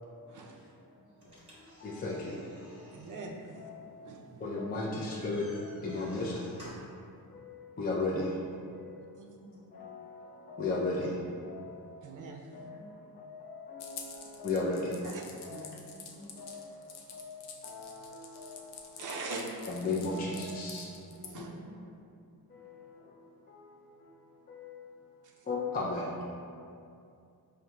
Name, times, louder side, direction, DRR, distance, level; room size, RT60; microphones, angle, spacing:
sound 1, 1.2-7.0, equal, 15° right, 1.2 m, -55 dB
voice 1, 1.6-3.0 3.6-4.1 4.4-6.6 7.3-8.4 8.7-9.2 9.7-12.0 12.5-15.0 15.4-15.7 16.1-19.0 19.7-21.0 21.3-21.4 22.5-24.1 24.5-25.1 25.4-26.5, left 2 dB, 25° left, -4 dB, 0.4 m, -37 dB
voice 2, 2.9-3.7 4.0-4.5 9.1-9.3 12.0-12.5 15.0-15.7 19.0-19.6 21.0-21.5 25.2-25.3, right 3 dB, 55° right, 1 dB, 0.5 m, -42 dB
voice 3, 9.4-9.8 12.6-13.0 15.9-16.3 21.3-21.9, left 1 dB, 60° left, -5 dB, 0.9 m, -54 dB
sound 2, 13.8-21.3, left 6 dB, 85° left, 0.5 m, -48 dB
4.8 x 2.2 x 2.8 m, 2.5 s
wide cardioid pair, 115°, 39 cm